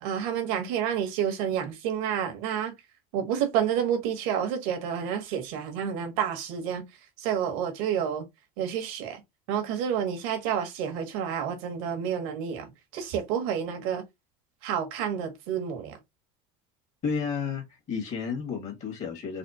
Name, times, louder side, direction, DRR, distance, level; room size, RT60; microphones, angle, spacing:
voice 1, 0.0-2.7 3.1-6.9 7.2-8.2 8.6-9.2 9.5-14.0 14.6-16.0, right 8 dB, 80° right, 1.5 m, -29 dB
voice 2, 17.0-19.4, left 6 dB, 40° left, 1.7 m, -32 dB
4.2 x 2.1 x 4.1 m
cardioid pair, 125°, 17 cm